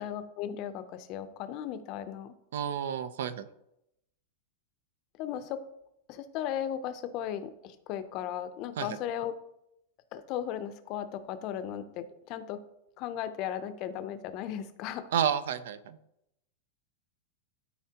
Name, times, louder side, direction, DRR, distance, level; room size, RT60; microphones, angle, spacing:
voice 1, 0.0-2.3 5.2-5.6 6.1-9.3 10.1-12.6 13.0-15.1, left 10 dB, 35° left, 11 dB, 0.5 m, -36 dB
voice 2, 2.5-3.5 8.8-9.0 15.1-16.0, right 8 dB, 75° right, 14 dB, 0.5 m, -30 dB
12.5 x 4.4 x 2.9 m, 0.83 s
supercardioid pair, 160°, 0 cm